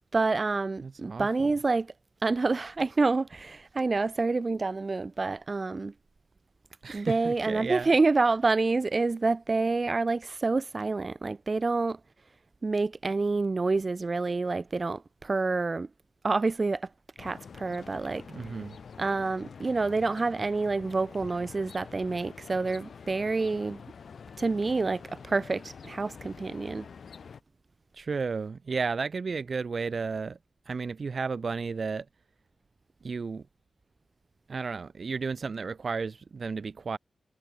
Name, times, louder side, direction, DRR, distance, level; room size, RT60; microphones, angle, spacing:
voice 1, 0.1-1.9 2.2-5.9 6.9-12.0 12.6-15.9 16.2-16.9 17.2-18.2 19.0-23.8 24.4-26.8, right 3 dB, 45° right, 1.7 m, -28 dB
voice 2, 0.8-1.3 6.8-7.9 18.3-18.8 27.9-30.4 30.7-32.0 33.0-33.4 34.5-37.0, right 5 dB, 60° right, 2.6 m, -33 dB
sound 1, 17.2-27.4, left 6 dB, 70° left, 4.8 m, -47 dB
cardioid pair, 50°, 0 cm